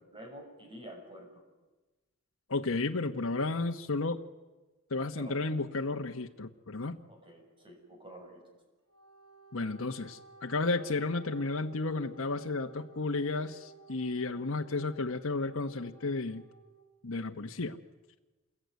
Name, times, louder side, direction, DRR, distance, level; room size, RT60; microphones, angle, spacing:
voice 1, 0.1-1.4 5.1-5.5 7.1-8.4, right 1 dB, 25° right, 3 dB, 6.8 m, -48 dB
voice 2, 2.5-4.2 4.9-7.0 9.5-16.4 17.0-17.8, left 3 dB, 70° left, 3 dB, 1.1 m, -33 dB
Wind instrument woodwind instrument, 8.8-16.8, right 5 dB, 85° right, 6.7 m, -55 dB
28.0 x 21.5 x 9.5 m, 1.2 s
head